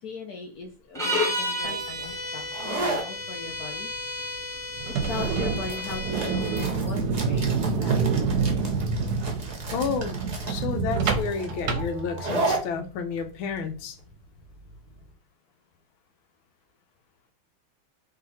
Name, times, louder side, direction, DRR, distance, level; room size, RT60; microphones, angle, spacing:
voice 1, 0.0-3.9 4.9-8.0, left 5 dB, 70° left, 0.9 m, -39 dB
sound 1, 0.9-6.7, left 1 dB, ahead, 1.1 m, -32 dB
sound 2, 1.6-15.0, right 2 dB, 40° right, 0.6 m, -35 dB
sound 3, 4.8-12.6, right 5 dB, 65° right, 1.1 m, -27 dB
voice 2, 9.7-10.2 10.5-14.0, left 5 dB, 85° left, 1.5 m, -31 dB
3.9 x 3.1 x 4.0 m
omnidirectional pair, 2.2 m